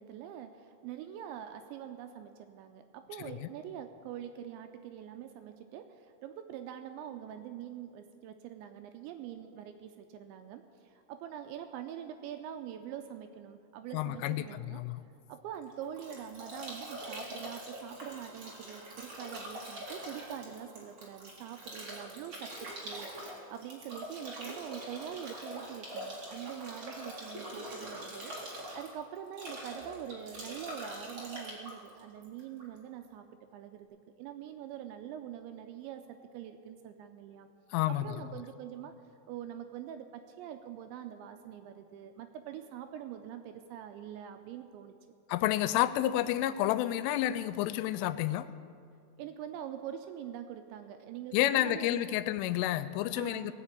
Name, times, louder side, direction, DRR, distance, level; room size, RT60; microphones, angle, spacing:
voice 1, 0.0-14.8 15.3-33.3 33.5-33.9 34.2-37.5 37.9-38.9 39.3-44.9 49.2-52.2 53.1-53.5, right 10 dB, 80° right, 7 dB, 2.7 m, -44 dB
voice 2, 3.2-3.5 13.9-15.0 37.7-38.2 45.3-48.5 51.3-53.5, left 13 dB, 85° left, 14 dB, 3.0 m, -30 dB
Bathtub (filling or washing) / Drip / Trickle dribble, 15.5-32.8, right 1 dB, 40° right, 1.9 m, -44 dB
18.5 x 6.6 x 8.4 m, 2.3 s
omnidirectional pair, 5.6 m